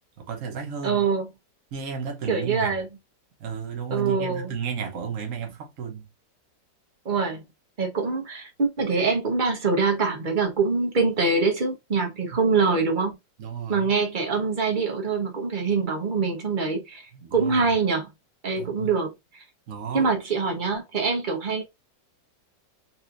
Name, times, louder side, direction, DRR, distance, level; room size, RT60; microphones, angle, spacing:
voice 1, 0.2-1.1 1.7-2.8 3.4-6.1 12.3-12.4 13.4-13.9 17.2-17.7 18.6-18.9 19.7-20.1, right 6 dB, 55° right, 1.2 m, -33 dB
voice 2, 0.8-1.3 2.3-2.9 3.9-4.5 7.0-7.4 7.8-13.2 13.7-18.1 18.4-19.1 19.9-21.6, right 4 dB, 35° right, 0.9 m, -24 dB
4.2 x 2.7 x 2.5 m
omnidirectional pair, 1.9 m